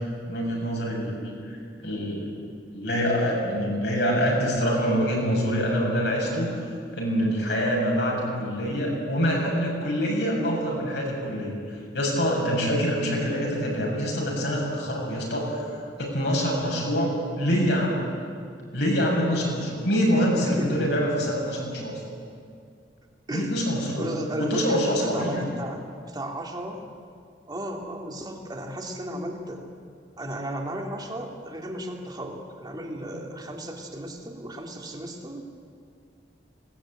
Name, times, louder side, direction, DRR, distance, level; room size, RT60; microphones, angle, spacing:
voice 1, 0.3-2.3 2.7-6.6 6.9-15.7 16.0-18.0 18.7-22.0 23.3-25.4, equal, 70° left, -2 dB, 7.1 m, -25 dB
voice 2, 20.1-20.9 23.3-23.5 24.0-26.8 27.5-29.7 30.2-35.5, right 1 dB, 25° right, 2 dB, 2.6 m, -35 dB
20.5 x 18.5 x 8.9 m, 2.2 s
head